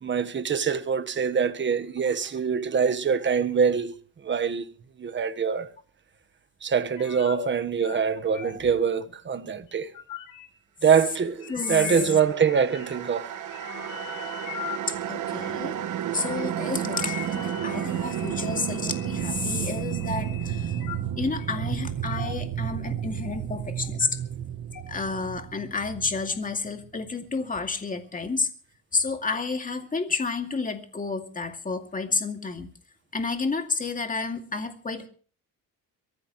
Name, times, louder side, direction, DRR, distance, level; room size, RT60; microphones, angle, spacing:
voice 1, 0.0-3.9 4.2-4.6 5.0-5.7 6.6-9.9 10.8-13.3, right 6 dB, 30° right, 1.3 m, -24 dB
sound 1, 7.0-7.5 7.8-8.1 8.3-8.7 9.6-10.5 11.4-12.1 12.4-13.1 13.4-14.8 15.4-15.6 16.1-16.4 16.9-21.0 21.4-21.6 22.1-22.4 22.8-23.5 23.8-24.1 24.7-24.8, left 10 dB, 70° left, 5.2 m, -40 dB
voice 2, 11.5-12.2 14.9-15.8 16.1-20.7 21.2-24.1 24.9-28.5 28.9-32.7 33.1-35.1, left 4 dB, 25° left, 2.4 m, -30 dB
sound 2, 11.9-27.1, right 10 dB, 60° right, 1.2 m, -32 dB
23.5 x 14.5 x 3.1 m
cardioid pair, 110°, 35 cm